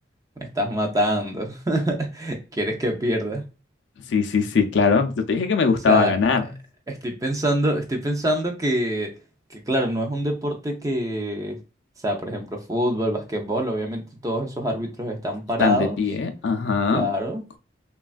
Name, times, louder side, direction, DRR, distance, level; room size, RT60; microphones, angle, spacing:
voice 1, 0.4-3.4 5.9-6.2 6.9-9.1 9.5-11.6 12.0-16.0 16.9-17.4, equal, 20° right, 3 dB, 0.4 m, -25 dB
voice 2, 4.1-6.4 15.6-17.1, left 5 dB, 70° left, 7 dB, 0.4 m, -21 dB
3.1 x 2.3 x 2.4 m, 0.32 s
head